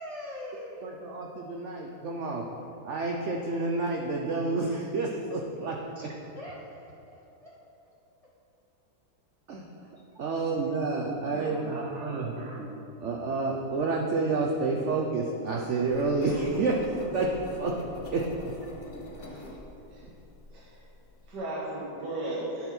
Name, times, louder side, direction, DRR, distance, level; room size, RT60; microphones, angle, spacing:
voice 1, 0.0-1.1 5.9-6.0 6.3-7.5, left 1 dB, 75° left, -5 dB, 0.3 m, -42 dB
voice 2, 0.8-2.4 2.8-6.1 9.5-9.6 10.2-12.7 13.0-16.8 17.1-17.3 17.6-17.8 18.1-18.6, right 3 dB, 85° right, 0 dB, 0.6 m, -29 dB
voice 3, 11.0-12.3 19.2-19.5 19.9-20.0 20.5-20.8 21.3-22.7, right 1 dB, 65° right, -6 dB, 1.7 m, -37 dB
Engine, 15.9-21.4, left 2 dB, 55° left, 0.8 m, -44 dB
11.5 x 4.2 x 4.3 m, 2.8 s
omnidirectional pair, 2.0 m